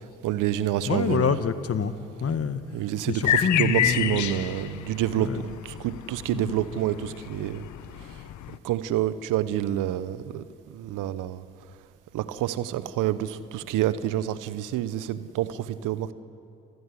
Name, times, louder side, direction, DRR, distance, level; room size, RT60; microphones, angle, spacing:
voice 1, 0.2-1.3 2.7-7.7 8.6-10.4 10.7-11.4 12.1-16.1, right 12 dB, 75° right, 14 dB, 1.1 m, -28 dB
voice 2, 0.8-1.9 2.2-2.6 3.1-4.3 5.1-5.5 6.3-6.6, left 6 dB, 45° left, 11 dB, 1.7 m, -27 dB
sound 1, 3.3-8.6, left 12 dB, 65° left, 0.9 m, -29 dB
28.5 x 17.5 x 9.9 m, 2.5 s
hypercardioid pair, 45°, 32 cm